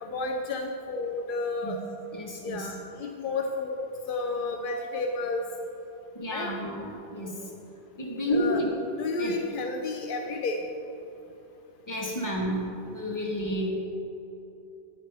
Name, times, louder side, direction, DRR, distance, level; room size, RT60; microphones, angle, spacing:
voice 1, 0.0-1.8 2.4-5.4 6.3-6.6 8.3-8.6 9.0-10.6, left 3 dB, 60° left, 4 dB, 0.7 m, -31 dB
voice 2, 2.1-2.7 4.7-4.8 6.1-7.5 8.0-8.7 9.2-9.3 11.9-13.7, equal, 15° left, -2 dB, 1.3 m, -31 dB
11.0 x 9.5 x 3.4 m, 2.9 s
omnidirectional pair, 1.1 m